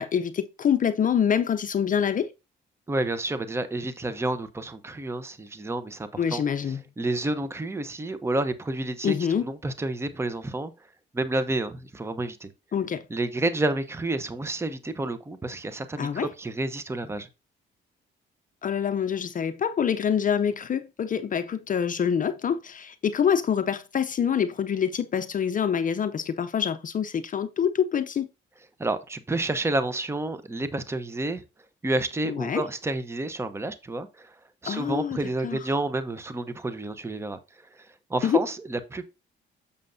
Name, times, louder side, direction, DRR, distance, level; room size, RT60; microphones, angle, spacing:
voice 1, 0.0-2.3 6.2-6.8 9.0-9.5 12.7-13.0 16.0-16.3 18.6-28.3 32.3-32.6 34.7-35.2 35.4-35.6 38.2-38.4, left 8 dB, 40° left, 0.6 m, -26 dB
voice 2, 2.9-9.2 9.4-10.7 11.1-12.5 13.1-17.3 28.8-31.4 31.8-34.4 34.6-37.4 37.7-39.1, right 2 dB, 15° right, 0.8 m, -30 dB
7.4 x 6.9 x 2.6 m
cardioid pair, 90°, 20 cm